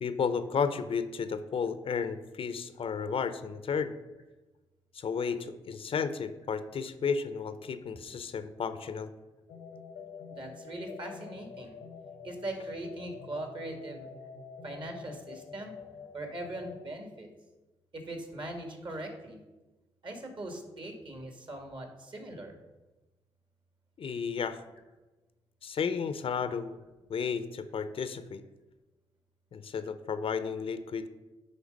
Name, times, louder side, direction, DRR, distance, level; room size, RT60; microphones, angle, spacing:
voice 1, 0.0-3.9 4.9-9.1 24.0-24.6 25.6-26.8 27.1-28.4 29.5-31.1, left 6 dB, 60° left, 11 dB, 0.6 m, -33 dB
sound 1, 9.5-16.9, left 5 dB, 90° left, 1.0 m, -47 dB
voice 2, 10.3-11.8 12.2-14.1 14.6-15.7 16.1-17.3 17.9-19.4 20.0-22.5, right 1 dB, 50° right, 4 dB, 2.0 m, -40 dB
9.6 x 3.4 x 5.3 m, 1.1 s
supercardioid pair, 55°, 11 cm